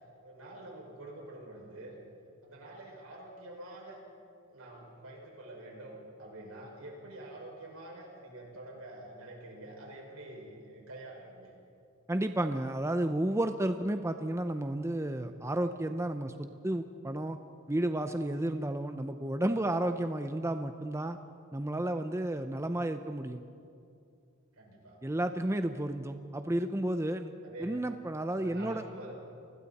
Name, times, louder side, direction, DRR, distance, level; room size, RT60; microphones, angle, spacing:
voice 1, 0.2-2.0 2.4-4.0 4.5-11.5 24.5-25.0 27.4-27.8 28.3-29.2, right 1 dB, 85° right, -1 dB, 5.8 m, -47 dB
voice 2, 12.1-17.4 17.7-21.2 21.5-23.4 25.0-27.3 27.6-28.8, right 1 dB, 15° right, 8 dB, 0.6 m, -32 dB
30.0 x 20.5 x 4.2 m, 2.5 s
head